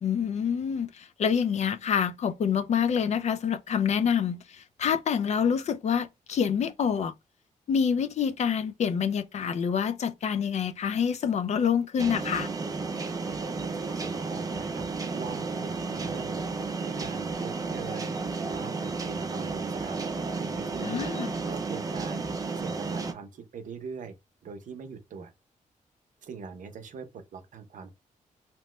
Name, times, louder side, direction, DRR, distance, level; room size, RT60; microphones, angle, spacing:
voice 1, 0.0-7.1 7.7-12.5 20.8-21.3, left 7 dB, 55° left, 0.4 m, -27 dB
sound 1, 12.0-23.1, right 4 dB, 25° right, 0.5 m, -32 dB
voice 2, 13.3-16.4 16.8-20.0 20.4-22.3 22.5-24.1 24.4-25.3 26.2-27.9, right 6 dB, 70° right, 0.6 m, -42 dB
2.9 x 2.1 x 3.1 m
wide cardioid pair, 120°, 14 cm